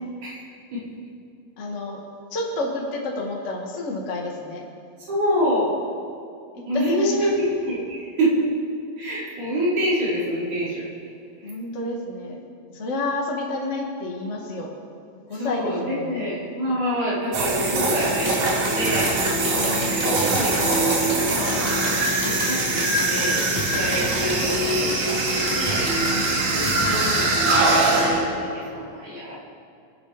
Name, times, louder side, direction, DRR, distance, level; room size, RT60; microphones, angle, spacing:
voice 1, 1.6-2.0 2.3-4.6 6.5-7.3 11.4-12.4 12.7-14.7 15.3-16.3 19.5-20.2 26.0-26.5, left 2 dB, 75° left, -1 dB, 0.6 m, -30 dB
voice 2, 5.1-5.8 6.7-8.5 9.0-10.9 11.4-11.5 15.3-19.2 19.9-21.7 22.2-26.0 26.4-29.4, equal, 40° right, -9 dB, 5.8 m, -27 dB
sound 1, 17.3-28.2, right 2 dB, 70° right, 5.0 m, -22 dB
sound 2, 18.3-26.3, equal, 10° right, 2.0 m, -31 dB
24.5 x 9.0 x 5.1 m, 2.4 s
omnidirectional pair, 5.3 m